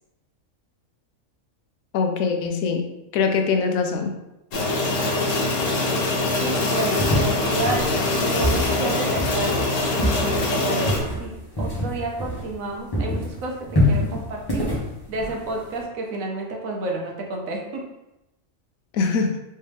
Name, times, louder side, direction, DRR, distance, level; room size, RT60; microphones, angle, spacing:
voice 1, 1.9-2.8 3.1-4.1 18.9-19.3, left 5 dB, 85° left, 4 dB, 1.0 m, -22 dB
sound 1, 4.5-11.0, left 2 dB, 70° left, 1.2 m, -23 dB
voice 2, 6.4-9.7 10.5-14.8 15.1-17.8, right 2 dB, 80° right, 0 dB, 1.2 m, -30 dB
sound 2, 7.0-12.7 12.9-15.8, left 1 dB, 20° left, 0.9 m, -26 dB
3.3 x 3.2 x 3.3 m, 0.92 s
omnidirectional pair, 1.4 m